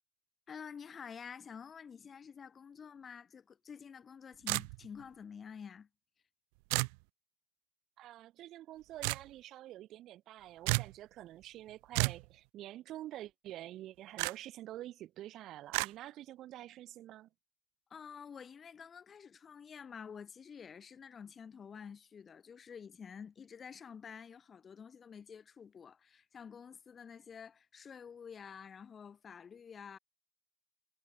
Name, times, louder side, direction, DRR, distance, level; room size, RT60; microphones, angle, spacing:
voice 1, 0.5-5.9 17.9-30.0, left 7 dB, 20° left, 3.2 m, -49 dB
sound 1, 4.5-5.0 6.7-7.0 9.0-9.3 10.7-10.9 11.9-12.3 14.2-14.3 15.7-15.9, right 35 dB, 50° right, 0.3 m, -32 dB
voice 2, 8.0-17.3, right 14 dB, 35° right, 3.0 m, -48 dB
hypercardioid pair, 125°, 0 cm